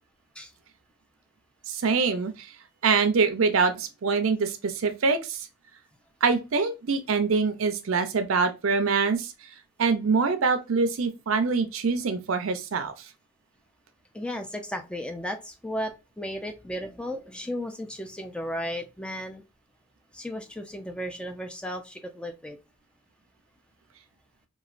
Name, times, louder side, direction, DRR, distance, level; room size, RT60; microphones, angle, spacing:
voice 1, 1.7-2.5 2.8-5.5 6.2-9.3 9.8-12.9, right 4 dB, 90° right, 0.5 m, -24 dB
voice 2, 14.1-19.4 20.1-22.6, equal, 5° left, 0.3 m, -34 dB
3.0 x 2.3 x 2.4 m
head